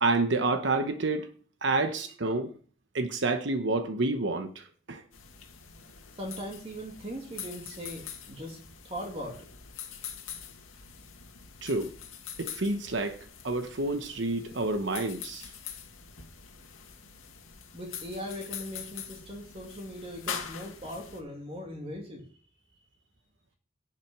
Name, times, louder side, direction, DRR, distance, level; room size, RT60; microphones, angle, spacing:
voice 1, 0.0-1.3 1.6-2.5 2.9-5.0 11.6-11.9 12.4-15.5, right 2 dB, 60° right, 1.0 m, -29 dB
sound 1, 5.1-21.2, left 8 dB, 85° left, 2.0 m, -44 dB
voice 2, 6.1-9.5 17.7-22.3, equal, 30° right, 2.1 m, -40 dB
11.0 x 6.1 x 6.0 m
head